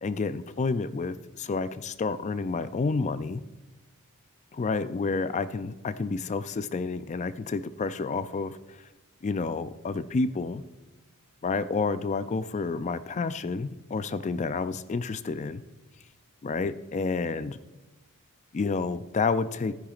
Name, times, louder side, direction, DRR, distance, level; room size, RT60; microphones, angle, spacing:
voice 1, 0.0-3.4 4.5-8.6 9.2-10.6 11.4-15.6 16.4-17.6 18.5-19.7, left 4 dB, 30° left, 14 dB, 0.4 m, -29 dB
14.5 x 10.0 x 2.4 m, 1.1 s
head